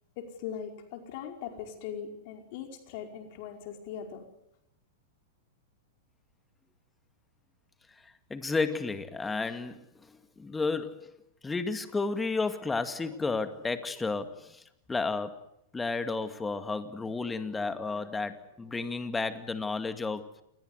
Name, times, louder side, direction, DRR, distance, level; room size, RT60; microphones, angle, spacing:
voice 1, 0.2-4.2, left 8 dB, 55° left, 4 dB, 4.9 m, -40 dB
voice 2, 8.0-11.2 11.4-15.4 15.7-20.3, left 4 dB, 10° left, 9 dB, 2.2 m, -32 dB
28.5 x 21.0 x 8.2 m, 0.81 s
hypercardioid pair, 105°, 0 cm